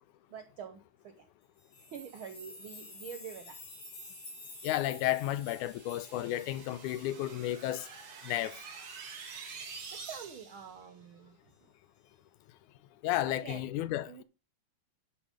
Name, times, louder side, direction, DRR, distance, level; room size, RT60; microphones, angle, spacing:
voice 1, 0.3-1.1 1.9-3.5 10.0-11.3 13.3-13.6 14.0-14.2, right 7 dB, 75° right, 1.2 m, -46 dB
sound 1, 1.6-8.4 8.9-9.0 9.2-9.4 9.9-10.0, left 2 dB, 55° left, 4.5 m, -51 dB
voice 2, 4.6-7.9 8.2-8.6 13.0-14.2, left 14 dB, 85° left, 2.1 m, -32 dB
sound 2, 4.8-10.7, right 5 dB, 50° right, 2.6 m, -48 dB
11.5 x 5.5 x 5.1 m
omnidirectional pair, 3.5 m